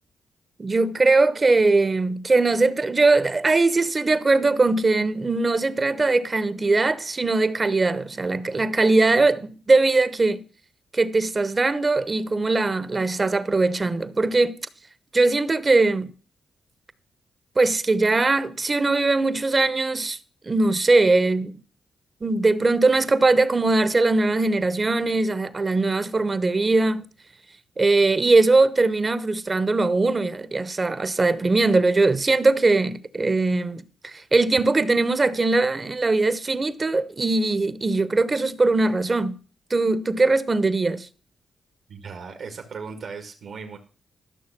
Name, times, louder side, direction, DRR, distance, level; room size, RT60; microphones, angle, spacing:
voice 1, 0.6-10.4 10.9-14.5 15.1-16.1 17.6-20.2 20.4-21.6 22.2-27.1 27.8-39.3 39.7-41.1, right 3 dB, 35° right, 1.0 m, -21 dB
voice 2, 41.9-43.8, right 5 dB, 70° right, 1.8 m, -37 dB
13.0 x 6.4 x 6.0 m
cardioid pair, 70°, 0 cm